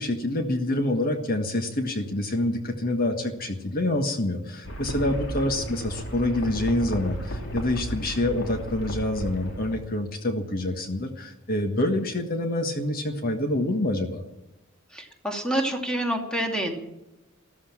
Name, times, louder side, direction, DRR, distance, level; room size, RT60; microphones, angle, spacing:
voice 1, 0.0-14.2, left 1 dB, 45° left, 5 dB, 1.5 m, -27 dB
sound 1, 4.6-9.7, right 1 dB, 60° left, 3.3 m, -34 dB
voice 2, 14.9-16.8, right 1 dB, 5° left, 2 dB, 2.6 m, -27 dB
14.0 x 14.0 x 7.3 m, 0.95 s
head